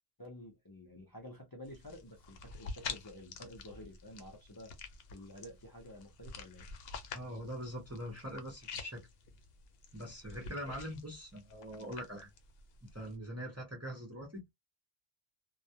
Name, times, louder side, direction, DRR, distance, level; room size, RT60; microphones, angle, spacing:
voice 1, 0.2-4.8 5.1-6.7, left 1 dB, 30° left, 0.5 m, -51 dB
sound 1, 1.6-13.2, left 5 dB, 75° left, 0.8 m, -48 dB
voice 2, 7.1-9.0 9.9-12.3 12.9-14.4, equal, 20° right, 0.5 m, -43 dB
2.2 x 2.0 x 2.7 m
omnidirectional pair, 1.1 m